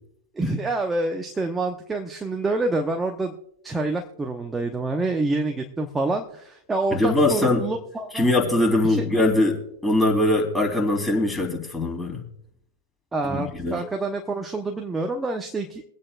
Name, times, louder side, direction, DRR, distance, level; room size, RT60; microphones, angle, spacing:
voice 1, 0.3-3.3 3.6-8.3 8.8-9.1 13.1-15.8, right 2 dB, 10° right, 4 dB, 0.9 m, -27 dB
voice 2, 6.9-7.7 8.1-12.2 13.2-13.8, left 2 dB, 10° left, 0 dB, 3.4 m, -22 dB
23.5 x 8.6 x 2.4 m, 0.74 s
figure-of-eight pair, 95°, 0 cm